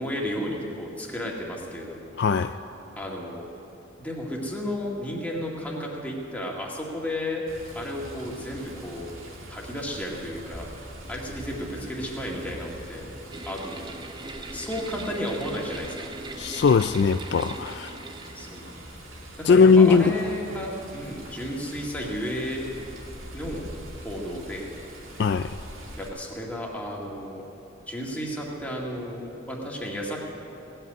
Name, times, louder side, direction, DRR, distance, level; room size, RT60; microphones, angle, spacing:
voice 1, 0.0-2.2 3.0-3.4 4.0-7.4 7.7-9.1 9.5-10.7 11.1-13.0 13.5-14.0 14.5-16.1 18.4-18.7 19.4-22.7 23.3-23.7 24.0-24.7 26.0-27.4 27.9-30.2, equal, 10° left, -3 dB, 2.0 m, -33 dB
voice 2, 2.2-2.6 16.4-18.0 19.4-20.1 25.2-25.6, left 5 dB, 55° left, 10 dB, 0.3 m, -19 dB
Water, 7.5-26.1, right 1 dB, 85° right, 3.0 m, -43 dB
sound 1, 13.3-18.9, right 2 dB, 20° right, 0.6 m, -40 dB
18.0 x 7.8 x 9.5 m, 3.0 s
head